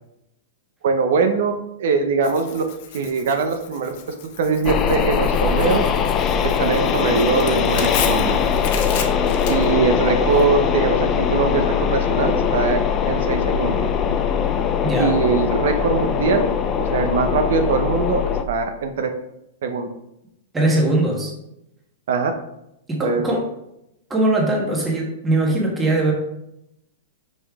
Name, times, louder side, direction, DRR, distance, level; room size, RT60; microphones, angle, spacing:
voice 1, 0.8-1.5 1.8-2.6 2.9-3.9 4.4-5.8 6.4-8.4 9.5-12.8 13.1-13.9 15.0-16.5 16.8-19.1 19.6-19.9 22.1-22.3 23.0-23.3, right 4 dB, 65° right, 6 dB, 0.7 m, -21 dB
Tearing, 2.2-10.4, left 7 dB, 45° left, 0.8 m, -34 dB
sound 1, 4.7-18.4, left 7 dB, 20° left, 0.4 m, -21 dB
voice 2, 14.8-15.1 20.5-21.3 22.9-23.4 24.1-26.1, right 1 dB, 10° right, -2 dB, 1.3 m, -20 dB
5.3 x 5.3 x 3.6 m, 0.83 s
supercardioid pair, 165°, 0 cm